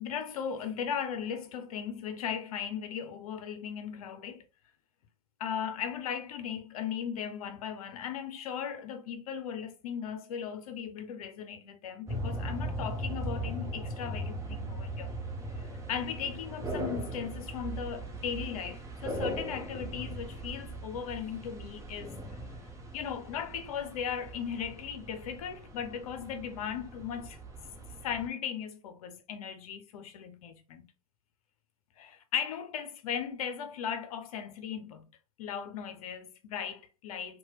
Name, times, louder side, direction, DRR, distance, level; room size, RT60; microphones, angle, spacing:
voice 1, 0.0-4.4 5.4-15.1 15.6-22.4 22.9-27.4 28.0-30.9 32.0-35.1 35.4-37.4, left 8 dB, 75° left, 0.5 m, -37 dB
sound 1, 12.1-28.3, right 1 dB, 15° right, 0.8 m, -39 dB
2.9 x 2.2 x 2.8 m
hypercardioid pair, 95°, 19 cm